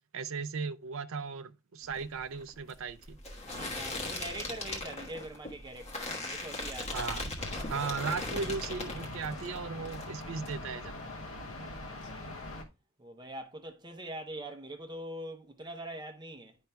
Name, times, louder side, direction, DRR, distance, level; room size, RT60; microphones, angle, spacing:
voice 1, 0.1-3.2 6.9-7.2 7.7-10.9, right 5 dB, 70° right, 0.5 m, -36 dB
sound 1, 1.8-9.6 9.9-10.5, left 2 dB, 30° left, 1.3 m, -39 dB
voice 2, 3.5-7.2 11.2-12.3 13.0-16.6, right 1 dB, 20° right, 0.7 m, -44 dB
sound 2, 7.4-12.6, left 2 dB, 70° left, 1.1 m, -43 dB
10.0 x 5.3 x 2.2 m
head